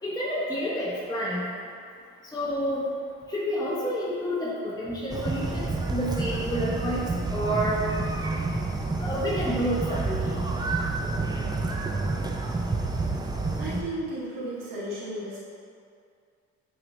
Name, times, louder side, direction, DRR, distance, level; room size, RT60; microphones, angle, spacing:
voice 1, 0.0-1.4 2.3-2.9 3.3-7.8 9.0-10.5, equal, 10° left, -7 dB, 0.9 m, -29 dB
sound 1, 5.1-13.8, right 3 dB, 10° right, 0.4 m, -29 dB
voice 2, 13.6-15.4, right 1 dB, 65° right, -7 dB, 1.2 m, -34 dB
5.7 x 3.1 x 2.6 m, 2.3 s
supercardioid pair, 60°, 34 cm